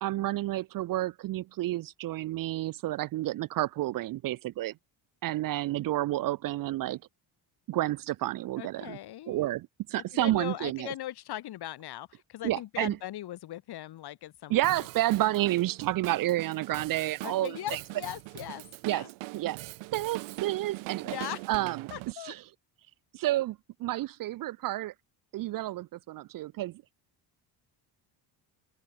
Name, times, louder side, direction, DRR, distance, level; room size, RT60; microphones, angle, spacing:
voice 1, 0.0-4.7 5.2-7.0 7.7-9.0 9.3-10.9 12.4-13.0 14.5-17.8 18.8-19.1 19.3-19.6 19.9-21.1 21.5-21.9 22.2-22.4 23.1-24.9 25.3-26.8, right 15 dB, 50° right, 0.5 m, -30 dB
voice 2, 8.6-9.5 10.0-14.6 17.2-19.1 21.0-21.4 21.9-22.3, left 13 dB, 55° left, 3.5 m, -39 dB
Drum kit, 14.6-22.1, right 24 dB, 90° right, 0.7 m, -41 dB
open air
cardioid pair, 170°, 46 cm